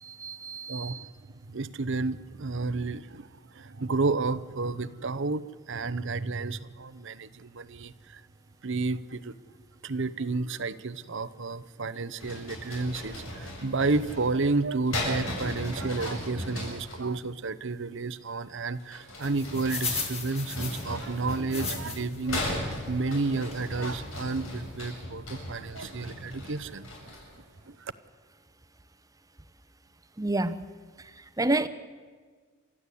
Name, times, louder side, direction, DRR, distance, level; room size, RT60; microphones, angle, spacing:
voice 1, 0.0-1.0 30.2-30.6 31.4-31.7, right 2 dB, 15° right, 0.9 m, -29 dB
voice 2, 0.7-1.1 1.4-8.2 8.6-9.4 9.8-27.1 27.6-27.9, right 3 dB, 60° right, 0.8 m, -31 dB
sound 1, 12.2-17.0 18.8-27.4, left 1 dB, 75° left, 7.6 m, -37 dB
sound 2, 19.2-22.2 22.7-22.8 23.5-23.7 24.2-24.3 24.5-24.6, left 5 dB, 30° left, 4.0 m, -36 dB
29.0 x 13.5 x 8.4 m
head